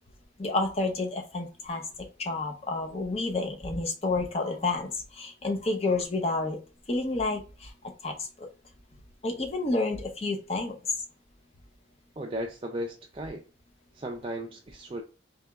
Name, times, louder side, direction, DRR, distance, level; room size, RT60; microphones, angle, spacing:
voice 1, 0.4-1.8 2.2-6.6 6.9-7.7 8.0-8.3 9.2-10.8, left 3 dB, 30° left, 0.6 m, -29 dB
voice 2, 12.2-13.4 13.9-15.0, right 1 dB, 25° right, 0.4 m, -35 dB
3.4 x 2.9 x 3.4 m
head